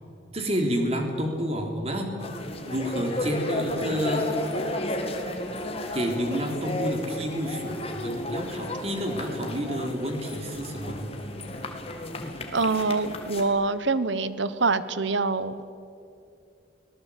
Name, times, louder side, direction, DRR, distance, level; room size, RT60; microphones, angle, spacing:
voice 1, 0.3-2.1 2.6-4.3 5.9-11.1, equal, 30° right, 3 dB, 3.3 m, -29 dB
sound 1, 2.2-13.4, left 1 dB, 30° left, 2.3 m, -33 dB
voice 2, 12.5-15.5, right 3 dB, 70° right, 14 dB, 1.1 m, -25 dB
25.0 x 18.5 x 8.5 m, 2.6 s
head